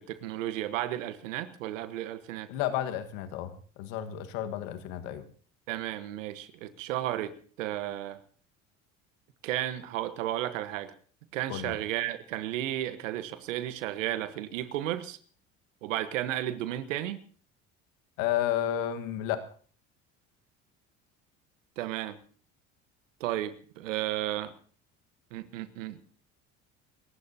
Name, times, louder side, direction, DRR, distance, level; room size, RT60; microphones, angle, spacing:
voice 1, 0.0-2.5 5.7-8.2 9.4-10.9 11.3-15.2 15.8-17.2 21.8-22.2 23.2-24.5 25.3-26.0, right 13 dB, 85° right, 12 dB, 1.3 m, -33 dB
voice 2, 2.5-5.2 11.5-11.8 18.2-19.4, left 11 dB, 75° left, 8 dB, 1.6 m, -32 dB
28.5 x 15.5 x 2.8 m, 0.43 s
hypercardioid pair, 70°, 37 cm